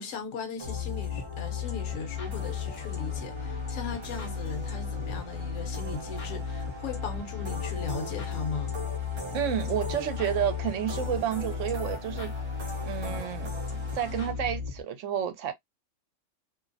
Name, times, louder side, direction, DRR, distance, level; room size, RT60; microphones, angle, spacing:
voice 1, 0.0-8.8, left 5 dB, 65° left, 1.0 m, -38 dB
sound 1, 0.6-14.8, left 7 dB, 40° left, 0.5 m, -35 dB
sound 2, 0.6-14.3, right 1 dB, 40° right, 0.4 m, -42 dB
voice 2, 9.3-12.3 12.8-15.5, right 10 dB, 70° right, 0.9 m, -30 dB
2.5 x 2.0 x 2.5 m
omnidirectional pair, 1.5 m